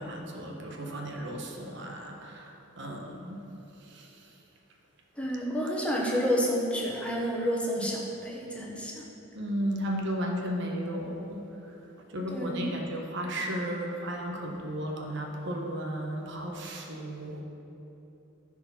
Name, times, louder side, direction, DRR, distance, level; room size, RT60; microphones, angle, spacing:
voice 1, 0.0-3.4 3.8-4.3 7.8-7.9 9.3-11.4 12.1-17.4, equal, 65° right, 1 dB, 1.2 m, -34 dB
voice 2, 5.2-9.0 12.3-12.7, equal, 5° left, -3 dB, 1.3 m, -30 dB
14.0 x 4.9 x 5.8 m, 2.9 s
head